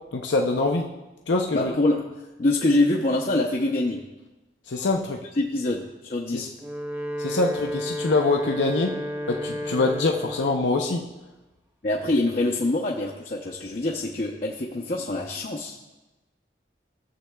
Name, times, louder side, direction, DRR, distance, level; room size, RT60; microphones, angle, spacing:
voice 1, 0.1-0.9 1.3-1.7 4.7-5.2 6.3-6.5 7.2-8.9 9.3-11.0, left 3 dB, 90° left, 2 dB, 0.7 m, -24 dB
voice 2, 1.5-2.0 2.4-4.0 5.4-6.5 11.8-15.7, left 2 dB, 50° left, -3 dB, 0.7 m, -25 dB
Wind instrument woodwind instrument, 6.5-10.7, equal, 15° right, 0.5 m, -32 dB
15.0 x 7.5 x 2.3 m, 1.0 s
head